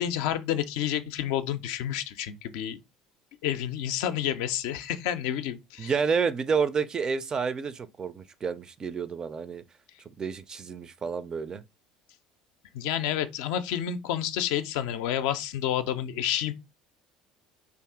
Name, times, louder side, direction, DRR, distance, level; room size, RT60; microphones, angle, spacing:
voice 1, 0.0-2.8 3.4-5.9 12.7-16.5, left 10 dB, 65° left, 0.4 m, -29 dB
voice 2, 5.8-9.6 10.1-11.6, right 6 dB, 30° right, 0.4 m, -29 dB
2.6 x 2.4 x 3.6 m
hypercardioid pair, 65°, 2 cm